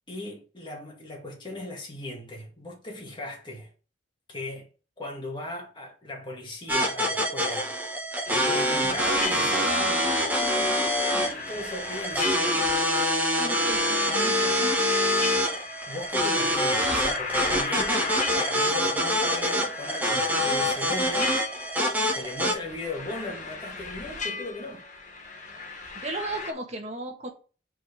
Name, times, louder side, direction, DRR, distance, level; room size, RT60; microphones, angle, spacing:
voice 1, 0.1-3.7 4.3-4.7 5.0-7.7 8.3-12.7 15.9-21.3 22.1-24.8, left 2 dB, 25° left, 2.1 m, -37 dB
sound 1, 6.7-22.5, equal, 10° right, 1.4 m, -25 dB
sound 2, 8.2-26.5, left 4 dB, 45° left, 1.4 m, -37 dB
voice 2, 13.3-14.8 25.9-27.3, right 2 dB, 40° right, 1.7 m, -36 dB
5.2 x 4.6 x 4.9 m
head